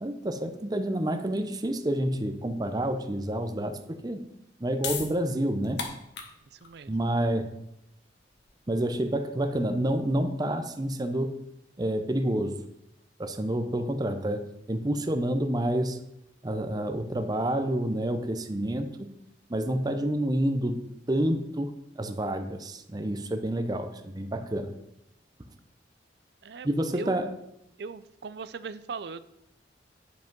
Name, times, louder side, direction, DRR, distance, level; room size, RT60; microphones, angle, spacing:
voice 1, 0.0-4.2 4.6-5.9 6.9-7.6 8.7-11.4 11.8-12.6 13.2-16.0 16.4-19.1 19.5-21.7 22.0-24.7 26.6-27.3, right 1 dB, 20° right, 8 dB, 0.6 m, -28 dB
sound 1, 4.8-11.1, left 5 dB, 80° left, 1.4 m, -41 dB
voice 2, 6.5-6.9 26.4-27.3 27.8-29.2, right 5 dB, 65° right, 14 dB, 0.4 m, -40 dB
10.0 x 5.2 x 5.3 m, 0.82 s
head